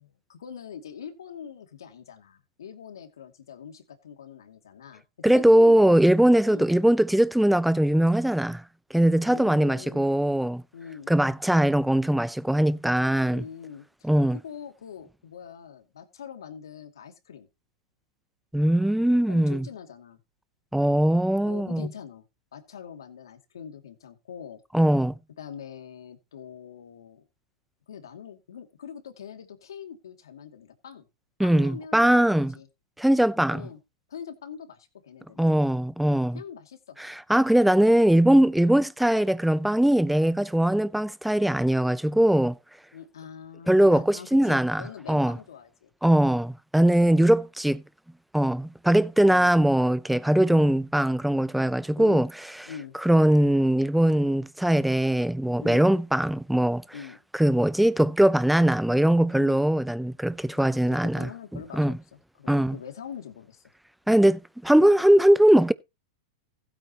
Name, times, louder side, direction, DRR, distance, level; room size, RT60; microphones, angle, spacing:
voice 1, 0.0-6.0 6.4-6.7 9.3-10.0 10.7-11.1 13.3-17.5 19.3-20.2 21.4-22.2 22.5-24.6 25.4-27.3 27.9-31.1 31.4-32.7 33.5-33.8 34.1-35.5 36.3-37.0 38.5-38.7 42.9-45.9 46.8-47.1 49.2-49.6 50.5-50.7 52.0-52.3 52.7-53.0 55.6-55.9 56.9-57.2 59.3-59.6 60.6-62.0 62.4-63.6, left 7 dB, 90° left, 2.5 m, -43 dB
voice 2, 5.2-8.6 8.9-10.6 11.1-13.4 14.0-14.4 18.5-19.7 20.7-21.9 24.7-25.1 31.4-32.6 33.0-33.6 35.4-36.4 37.0-42.6 43.7-44.8 45.1-45.4 46.0-47.8 48.3-52.3 53.0-56.8 57.3-61.3 61.7-62.0 62.5-62.8 64.1-65.7, right 1 dB, ahead, 0.6 m, -21 dB
16.0 x 8.8 x 3.0 m
hypercardioid pair, 135°, 2 cm